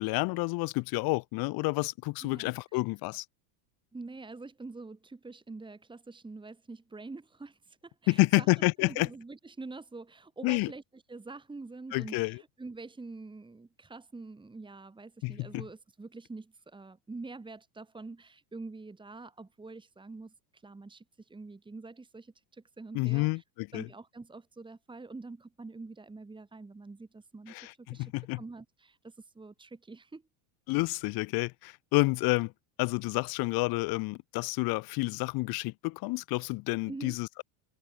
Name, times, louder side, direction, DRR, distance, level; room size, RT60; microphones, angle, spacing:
voice 1, 0.0-3.2 8.1-9.1 10.4-10.7 11.9-12.4 15.2-15.6 22.9-23.9 27.5-28.4 30.7-32.5 32.8-37.4, left 25 dB, 50° left, 0.9 m, -29 dB
voice 2, 2.2-2.8 3.9-8.5 8.8-23.4 23.7-30.2 36.9-37.1, right 3 dB, 10° right, 5.1 m, -46 dB
cardioid pair, 145°, 46 cm